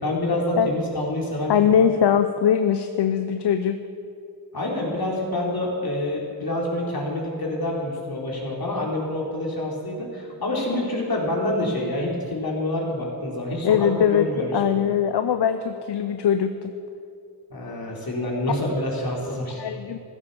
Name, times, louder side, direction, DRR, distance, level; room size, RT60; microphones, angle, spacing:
voice 1, 0.0-1.7 4.5-14.9 17.5-19.6, left 1 dB, 60° left, -2 dB, 3.8 m, -27 dB
voice 2, 1.5-3.8 13.6-16.7 19.6-20.0, left 8 dB, 80° left, 9 dB, 0.7 m, -21 dB
15.0 x 12.5 x 7.0 m, 2.5 s
wide cardioid pair, 70°, 41 cm